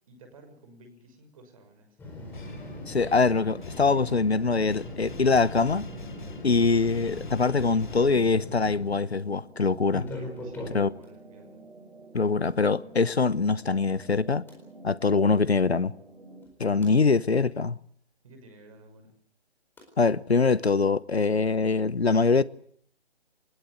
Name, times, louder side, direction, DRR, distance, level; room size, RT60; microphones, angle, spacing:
voice 1, 0.1-2.0 10.4-11.6 16.8-17.1 18.2-19.1, right 2 dB, 30° right, 6.2 m, -53 dB
sound 1, 2.0-9.1 9.8-11.1 12.5-12.6 14.5-14.6 16.4-16.9 19.8-19.9, left 1 dB, 5° left, 4.4 m, -40 dB
sound 2, 2.3-8.7, left 4 dB, 45° left, 2.9 m, -45 dB
sound 3, 2.6-16.4, right 2 dB, 65° right, 7.6 m, -49 dB
voice 2, 2.9-5.8 6.4-10.1 10.7-10.9 12.1-14.4 14.8-15.9 16.6-17.8 20.0-22.4, left 4 dB, 75° left, 1.1 m, -23 dB
23.0 x 20.5 x 8.1 m
figure-of-eight pair, 145°, 33 cm